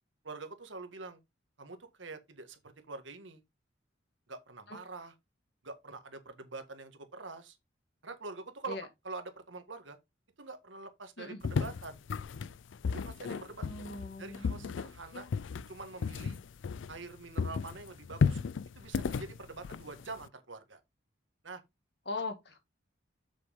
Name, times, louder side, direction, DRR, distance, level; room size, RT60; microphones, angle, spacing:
voice 1, 0.2-1.2 1.6-2.6 2.9-3.4 4.3-5.1 5.6-7.6 8.0-8.8 9.0-10.0 10.4-12.0 13.0-13.6 14.2-15.3 15.7-16.4 16.9-18.4 18.8-20.8 21.4-21.6, right 3 dB, 80° right, 1.7 m, -45 dB
sound 1, 11.4-17.1 17.4-20.3, left 5 dB, 80° left, 0.4 m, -34 dB
voice 2, 13.6-14.7 22.1-22.6, left 3 dB, 60° left, 2.0 m, -40 dB
7.7 x 6.2 x 3.6 m
head